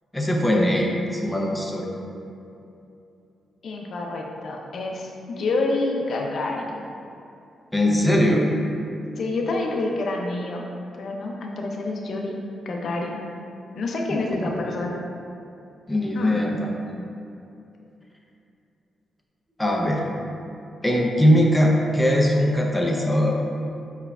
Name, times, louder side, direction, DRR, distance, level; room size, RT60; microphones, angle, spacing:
voice 1, 0.1-1.9 7.7-8.4 14.1-14.5 15.9-17.0 19.6-20.0 20.8-23.4, equal, 5° left, -1 dB, 0.5 m, -21 dB
voice 2, 3.6-6.8 9.2-10.6 11.0-12.4 12.7-13.2 13.8-15.0 16.1-16.6, left 2 dB, 60° left, 0 dB, 0.4 m, -28 dB
4.8 x 4.5 x 2.3 m, 2.7 s
cardioid pair, 110°, 0 cm